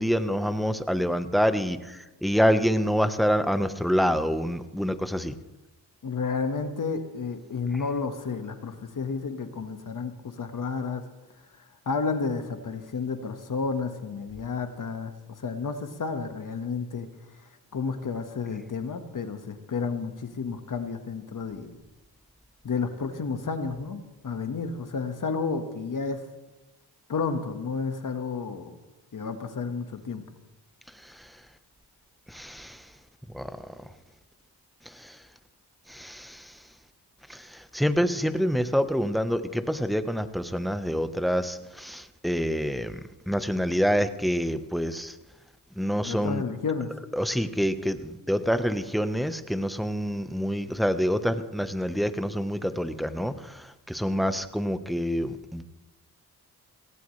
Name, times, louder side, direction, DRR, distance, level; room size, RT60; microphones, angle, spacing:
voice 1, 0.0-1.8 2.2-5.3 32.3-32.7 33.3-33.5 35.9-36.3 37.7-42.9 43.3-45.1 45.8-46.4 47.2-53.3 53.9-55.6, equal, ahead, 10 dB, 1.1 m, -26 dB
voice 2, 6.0-11.0 11.5-17.1 17.4-21.8 22.6-26.2 27.1-28.8 29.1-30.2 46.0-46.9, left 5 dB, 55° left, 7 dB, 1.6 m, -31 dB
18.0 x 17.0 x 3.3 m, 1.1 s
cardioid pair, 65°, 39 cm